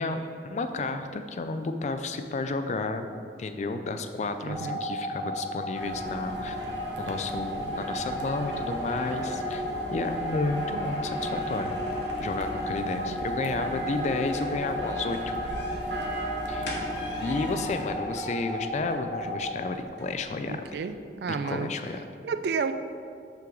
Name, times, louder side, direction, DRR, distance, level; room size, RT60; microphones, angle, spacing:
voice 1, 0.0-3.1 3.4-6.6 7.0-9.6 9.9-11.7 12.2-15.3 16.5-16.7 17.2-20.6 21.3-22.0, left 3 dB, 40° left, 8 dB, 0.3 m, -32 dB
voice 2, 4.4-4.8 20.5-21.7 22.2-22.7, right 5 dB, 65° right, 10 dB, 0.3 m, -31 dB
sound 1, 4.5-19.5, left 1 dB, 5° left, 1.1 m, -34 dB
sound 2, 5.7-17.9, right 1 dB, 85° right, 0.9 m, -37 dB
sound 3, 7.1-20.9, left 1 dB, 80° left, 1.1 m, -46 dB
5.7 x 3.8 x 5.9 m, 2.3 s
head